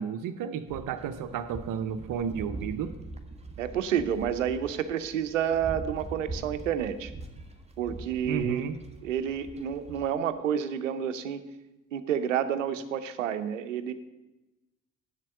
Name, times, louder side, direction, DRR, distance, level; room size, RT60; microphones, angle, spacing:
voice 1, 0.0-2.9 8.2-8.7, right 7 dB, 60° right, 8 dB, 0.8 m, -32 dB
sound 1, 0.7-10.1, right 2 dB, 15° right, 1.5 m, -43 dB
voice 2, 3.6-7.1 7.8-8.6 9.0-11.4 11.9-13.9, right 9 dB, 90° right, 11 dB, 0.7 m, -29 dB
8.3 x 7.5 x 7.7 m, 1.0 s
hypercardioid pair, 50°, 37 cm